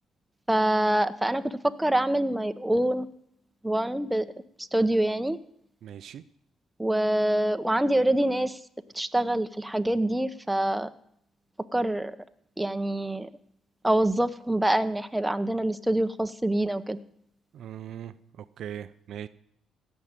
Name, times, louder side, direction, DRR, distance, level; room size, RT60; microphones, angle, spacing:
voice 1, 0.5-3.1 3.6-4.3 4.6-5.4 6.8-8.6 8.9-10.9 11.7-12.2 12.6-13.3 13.8-17.0, right 1 dB, 10° right, 9 dB, 0.9 m, -25 dB
voice 2, 5.8-6.2 17.5-19.3, right 10 dB, 70° right, 13 dB, 0.5 m, -40 dB
16.5 x 6.4 x 9.0 m, 0.72 s
supercardioid pair, 65°, 0 cm